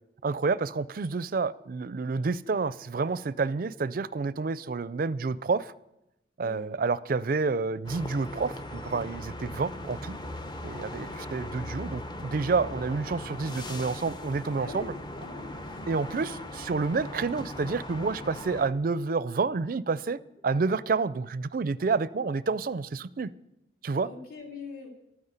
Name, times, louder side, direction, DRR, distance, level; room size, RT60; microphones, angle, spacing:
voice 1, 0.2-5.7 6.4-10.2 10.6-14.9 15.9-23.3 23.8-24.1, right 4 dB, 50° right, 17 dB, 0.4 m, -29 dB
voice 2, 6.4-6.7 10.9-11.2 14.6-15.9 24.0-24.9, left 3 dB, 55° left, 0 dB, 2.5 m, -43 dB
sound 1, 7.8-18.7, left 1 dB, 25° left, 0.7 m, -39 dB
12.5 x 9.6 x 8.1 m, 0.87 s
head